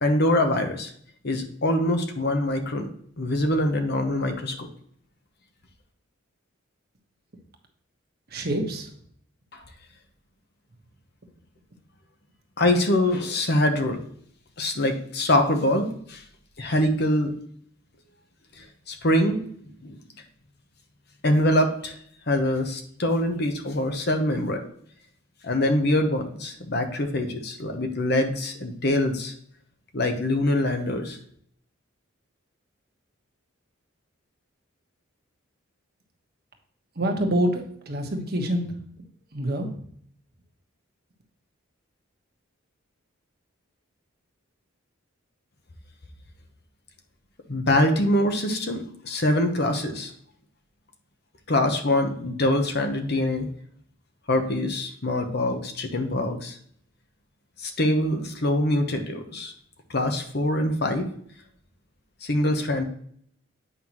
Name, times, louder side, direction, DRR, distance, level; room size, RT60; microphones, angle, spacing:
voice 1, 0.0-0.9 1.2-2.9 3.2-4.7 12.6-14.0 14.6-16.2 16.6-17.3 18.6-19.4 19.8-20.0 21.2-21.9 22.3-24.6 25.4-29.3 29.9-31.2 47.5-50.1 51.5-53.5 54.3-56.6 57.6-59.5 59.9-61.1 62.2-62.8, left 1 dB, 50° left, 5 dB, 1.0 m, -24 dB
voice 2, 8.3-8.9 37.0-38.8 39.3-39.7, right 1 dB, 50° right, 2 dB, 1.3 m, -26 dB
8.5 x 5.6 x 3.0 m, 0.63 s
head